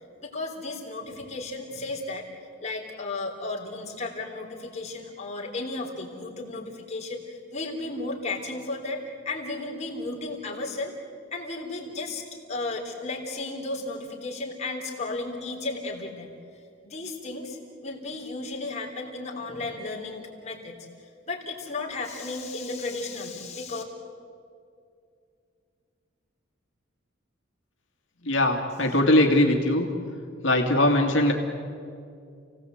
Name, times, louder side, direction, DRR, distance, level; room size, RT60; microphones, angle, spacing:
voice 1, 0.2-2.3 2.6-10.9 11.3-16.3 16.8-20.8 21.3-23.8, left 2 dB, 35° left, -1 dB, 3.7 m, -34 dB
voice 2, 28.2-29.9 30.4-31.3, left 1 dB, 65° left, 2 dB, 2.4 m, -21 dB
29.0 x 18.0 x 8.0 m, 2.4 s
head